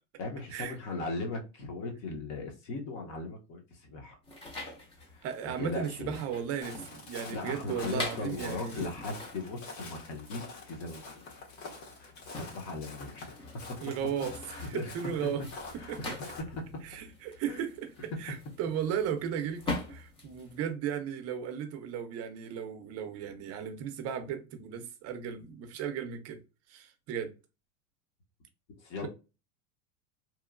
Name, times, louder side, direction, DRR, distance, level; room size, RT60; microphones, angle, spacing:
voice 1, 0.2-4.2 5.1-6.2 7.3-10.4 10.7-11.3 12.0-13.8 14.5-14.9 15.4-15.5 15.8-16.1 16.4-16.8 17.5-17.6 18.1-18.2 28.8-29.1, left 3 dB, 45° left, 0.8 m, -38 dB
sound 1, 4.2-20.7, left 2 dB, 15° left, 0.4 m, -44 dB
voice 2, 5.2-8.9 13.8-15.4 15.9-16.1 16.8-26.4 26.7-27.3, right 8 dB, 35° right, 0.5 m, -36 dB
Walk footsteps, 6.6-16.4, left 3 dB, 65° left, 1.3 m, -46 dB
2.9 x 2.1 x 2.4 m
supercardioid pair, 130°, 43 cm